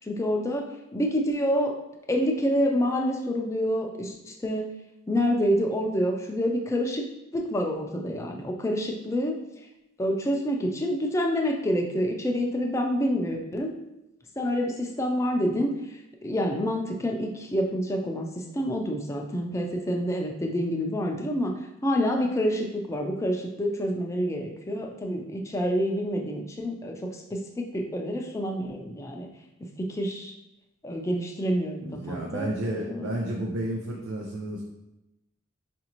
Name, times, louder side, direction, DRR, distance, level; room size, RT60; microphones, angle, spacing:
voice 1, 0.1-1.7 2.1-4.7 5.1-7.1 7.3-9.4 10.0-13.7 14.4-16.0 16.2-21.5 21.8-29.3 29.6-30.3 30.8-33.1, equal, 15° left, 2 dB, 0.4 m, -27 dB
voice 2, 31.8-34.6, right 1 dB, 85° right, -1 dB, 0.5 m, -31 dB
4.8 x 2.6 x 2.9 m, 0.92 s
head